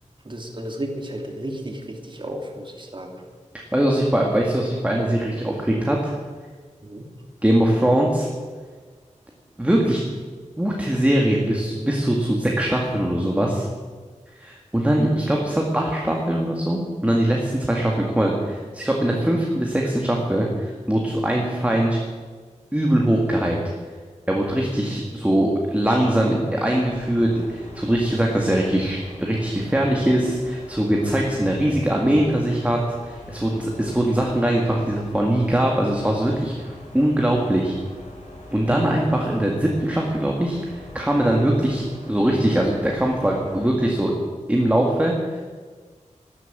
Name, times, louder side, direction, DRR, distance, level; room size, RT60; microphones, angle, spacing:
voice 1, 0.2-3.2 6.8-7.1 38.7-39.0, right 1 dB, 40° right, 2 dB, 2.5 m, -33 dB
voice 2, 3.7-6.1 7.4-8.3 9.6-10.0 10.6-13.7 14.4-22.0 22.7-23.6 24.3-32.8 33.0-37.7 38.5-44.1 44.5-45.1, right 1 dB, 10° right, -1 dB, 2.0 m, -21 dB
sound 1, 26.9-43.7, left 1 dB, 75° left, 5.1 m, -43 dB
13.0 x 12.5 x 7.5 m, 1.5 s
wide cardioid pair, 90°, 13 cm